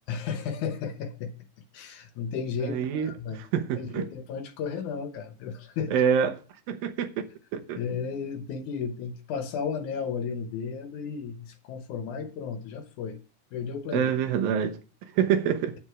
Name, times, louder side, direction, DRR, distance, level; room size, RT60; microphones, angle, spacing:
voice 1, 0.1-1.3 1.7-3.4 3.8-5.9 7.8-13.2 13.5-14.1, left 6 dB, 70° left, 2.2 m, -34 dB
voice 2, 2.6-4.1 5.9-6.4 6.7-7.3 7.5-7.8 13.9-14.8 15.2-15.7, right 8 dB, 90° right, 2.9 m, -26 dB
8.9 x 8.8 x 4.9 m
omnidirectional pair, 4.0 m